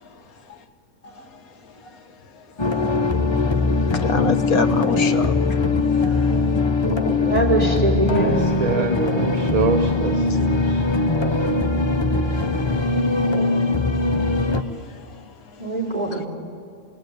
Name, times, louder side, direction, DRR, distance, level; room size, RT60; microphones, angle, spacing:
sound 1, 2.6-14.6, left 3 dB, 25° left, 0.7 m, -21 dB
voice 1, 3.9-5.3 5.7-6.3 10.3-10.4 12.9-14.4 14.8-15.2 16.1-16.2, left 3 dB, 85° left, 7 dB, 1.8 m, -28 dB
voice 2, 6.0-6.4 8.2-10.9, right 4 dB, 75° right, 4 dB, 1.7 m, -26 dB
voice 3, 7.2-8.4 15.6-16.3, right 2 dB, 25° right, -2 dB, 5.1 m, -22 dB
26.5 x 19.5 x 9.4 m, 2.3 s
omnidirectional pair, 1.5 m